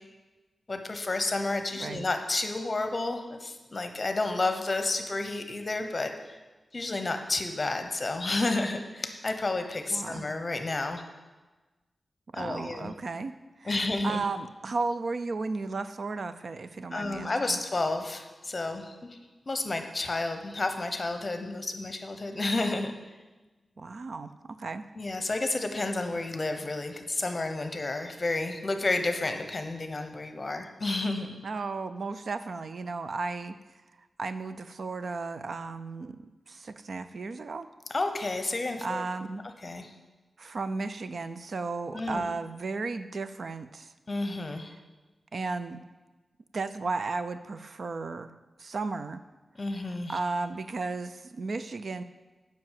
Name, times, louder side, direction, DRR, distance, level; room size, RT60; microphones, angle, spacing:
voice 1, 0.7-6.1 6.7-11.0 12.4-12.9 13.7-14.2 16.9-18.9 19.5-22.9 25.0-31.4 37.9-39.0 39.6-39.9 41.9-42.3 44.1-44.7 49.6-50.2, left 2 dB, 30° left, 7 dB, 0.8 m, -31 dB
voice 2, 1.7-2.1 9.9-10.3 12.3-13.3 13.6-17.6 23.8-24.8 31.4-33.6 34.2-37.7 38.8-39.4 40.4-43.9 44.7-44.8 45.3-45.9 46.5-48.3 48.6-49.2 50.1-52.0, right 3 dB, 55° right, 11 dB, 0.4 m, -34 dB
7.7 x 5.7 x 7.4 m, 1.2 s
wide cardioid pair, 130°, 0 cm